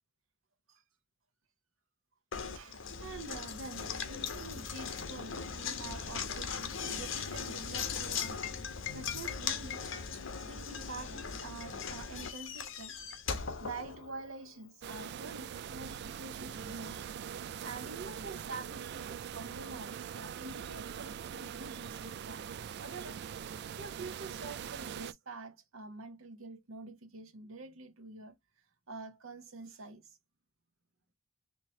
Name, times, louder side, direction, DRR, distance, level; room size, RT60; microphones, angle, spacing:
Knock, 2.3-14.5, left 6 dB, 65° left, 1.0 m, -39 dB
voice 1, 2.5-8.4 8.9-9.9 10.4-13.0 13.3-17.0 17.6-23.2 23.5-28.4 28.9-30.2, right 3 dB, 85° right, 1.0 m, -47 dB
sound 1, 14.8-25.1, right 8 dB, 55° right, 0.3 m, -42 dB
4.5 x 2.9 x 2.8 m
head